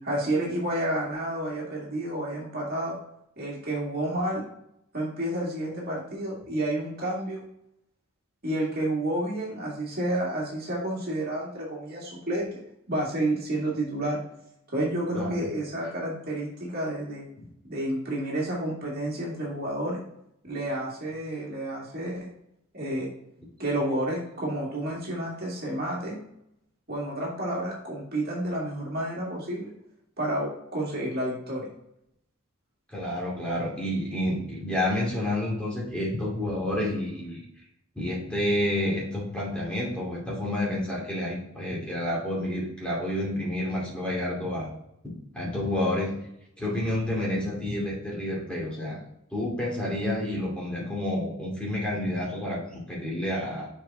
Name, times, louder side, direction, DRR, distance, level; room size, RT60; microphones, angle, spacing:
voice 1, 0.0-2.9 3.4-4.4 4.9-7.4 8.4-12.6 12.9-14.2 14.7-17.3 17.7-20.0 20.4-22.3 22.7-23.1 23.6-26.2 26.9-29.7 30.2-31.7, right 1 dB, 45° right, -3 dB, 2.1 m, -30 dB
voice 2, 32.9-37.4 38.0-44.7 45.0-46.1 46.6-49.0 49.3-53.7, left 1 dB, 5° left, -5 dB, 2.5 m, -29 dB
6.7 x 4.9 x 3.6 m, 0.78 s
head